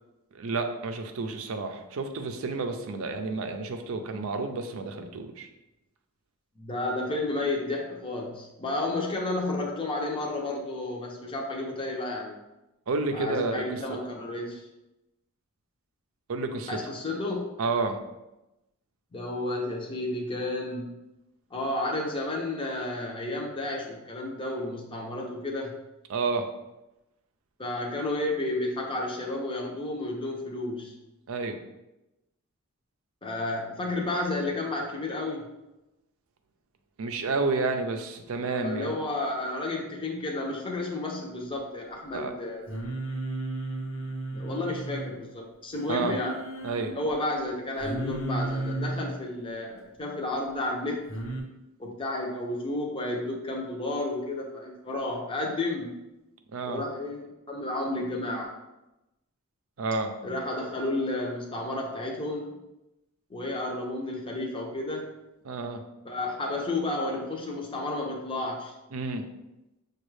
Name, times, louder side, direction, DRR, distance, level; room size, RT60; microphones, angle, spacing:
voice 1, 0.3-5.5 12.9-13.5 16.3-16.8 17.6-18.0 26.1-26.5 31.3-31.6 37.0-38.9 42.1-42.3 45.9-46.2 46.6-47.0 56.5-56.8 59.8-60.1 65.4-65.8 68.9-69.2, right 3 dB, 70° right, 6 dB, 0.5 m, -30 dB
voice 2, 6.6-12.4 13.1-14.6 16.7-17.5 19.1-21.0 21.5-25.7 27.6-30.9 33.2-35.5 38.6-42.7 44.3-46.4 46.9-51.1 51.8-56.0 56.6-58.5 60.2-62.6 63.3-65.1 66.0-68.7, left 2 dB, 25° left, -1 dB, 0.6 m, -32 dB
Singing, 42.7-45.1 45.7-46.9 47.8-49.1 51.1-51.4, right 2 dB, 70° left, 0.9 m, -33 dB
6.1 x 2.3 x 3.2 m, 0.95 s
head